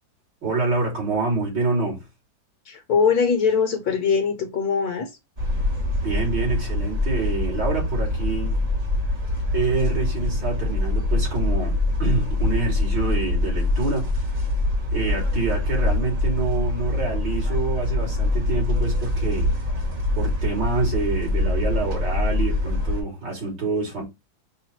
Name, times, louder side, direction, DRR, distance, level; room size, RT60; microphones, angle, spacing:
voice 1, 0.4-2.0 6.0-8.6 9.5-14.1 14.9-19.5 20.1-24.0, right 3 dB, 65° right, 3.4 m, -26 dB
voice 2, 2.7-5.1, left 6 dB, 60° left, 1.4 m, -21 dB
sound 1, 5.4-23.0, left 2 dB, 30° right, 1.0 m, -24 dB
5.5 x 2.5 x 2.9 m
omnidirectional pair, 2.1 m